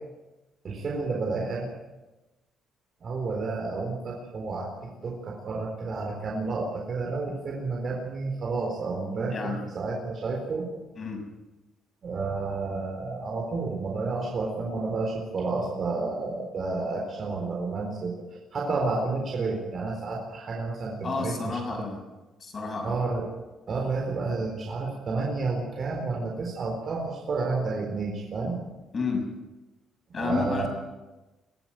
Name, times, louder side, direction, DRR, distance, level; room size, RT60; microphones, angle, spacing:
voice 1, 0.6-1.7 3.0-4.7 5.0-10.7 12.0-21.8 22.8-23.3 23.7-28.6 30.1-30.7, right 3 dB, 45° right, -1 dB, 4.2 m, -30 dB
voice 2, 9.3-9.6 11.0-11.2 21.0-22.0 22.4-23.0 28.9-29.3 30.1-30.7, left 4 dB, 35° left, 3 dB, 6.4 m, -30 dB
23.0 x 15.5 x 7.8 m, 1.1 s
cardioid pair, 120°, 0 cm